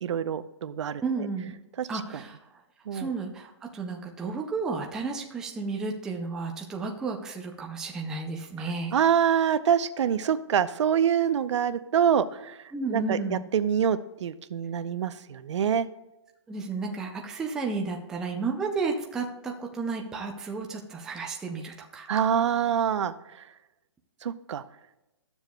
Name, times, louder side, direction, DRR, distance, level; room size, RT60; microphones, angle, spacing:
voice 1, 0.0-1.0 1.8-1.9 2.1-2.2 2.9-3.1 8.6-8.7 8.9-12.6 12.9-15.9 22.1-23.1 24.2-24.6, right 8 dB, 70° right, 12 dB, 0.6 m, -25 dB
voice 2, 1.0-1.6 1.9-2.4 2.9-8.9 12.7-13.4 16.5-22.1, right 4 dB, 5° right, 1 dB, 0.3 m, -32 dB
12.0 x 7.0 x 2.2 m, 0.94 s
hypercardioid pair, 160°, 16 cm